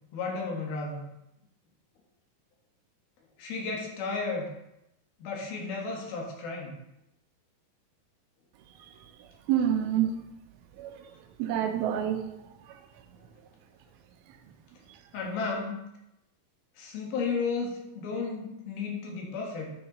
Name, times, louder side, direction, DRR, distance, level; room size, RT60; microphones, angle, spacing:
voice 1, 0.1-1.1 3.4-4.5 5.2-6.8 15.1-15.9 16.8-19.7, left 4 dB, 85° left, 0 dB, 3.5 m, -33 dB
voice 2, 9.5-10.2 10.8-11.1 11.4-12.4 12.7-12.8, right 10 dB, 90° right, 7 dB, 2.7 m, -28 dB
9.5 x 5.9 x 4.1 m, 0.85 s
omnidirectional pair, 4.2 m